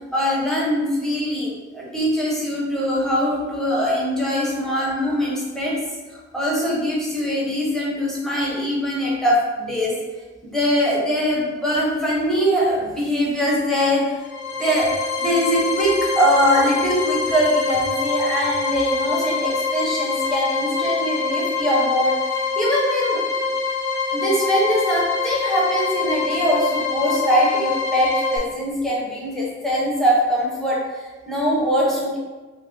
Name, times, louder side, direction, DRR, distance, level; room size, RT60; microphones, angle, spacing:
voice 1, 0.1-5.7 6.1-9.9 10.4-14.2 14.6-14.9 15.2-23.2 24.1-32.2, equal, ahead, -6 dB, 0.8 m, -22 dB
sound 1, 14.2-28.4, left 4 dB, 80° left, 0.5 m, -25 dB
2.8 x 2.5 x 3.7 m, 1.3 s
head